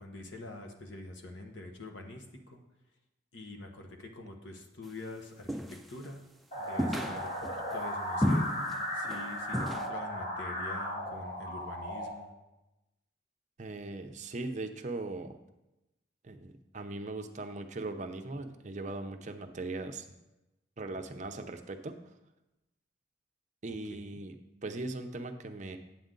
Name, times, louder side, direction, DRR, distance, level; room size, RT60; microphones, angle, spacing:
voice 1, 0.0-2.6 3.3-6.2 6.5-8.5 8.9-12.3 23.9-24.2, left 2 dB, 80° left, 3 dB, 1.2 m, -45 dB
sound 1, 5.5-6.1 6.8-7.6 8.2-8.8 9.0-9.2 9.5-9.9, left 1 dB, ahead, 0.4 m, -31 dB
sound 2, 6.5-12.1, equal, 45° left, 2.2 m, -36 dB
voice 2, 13.6-15.4 16.2-20.1 20.8-22.0 23.6-24.3 24.6-25.8, right 2 dB, 40° right, 7 dB, 0.6 m, -39 dB
8.8 x 7.7 x 3.8 m, 0.96 s
head